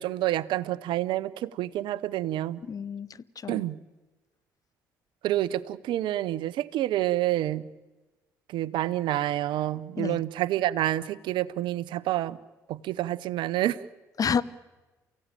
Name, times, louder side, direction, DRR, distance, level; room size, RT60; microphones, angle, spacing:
voice 1, 0.0-2.6 3.5-3.8 5.2-7.7 8.5-12.4 12.7-13.8, right 14 dB, 70° right, 18 dB, 0.8 m, -28 dB
voice 2, 2.6-3.1 3.4-3.6 10.0-10.2 14.2-14.4, left 6 dB, 45° left, 18 dB, 1.0 m, -29 dB
28.5 x 16.0 x 9.0 m, 1.2 s
hypercardioid pair, 50°, 8 cm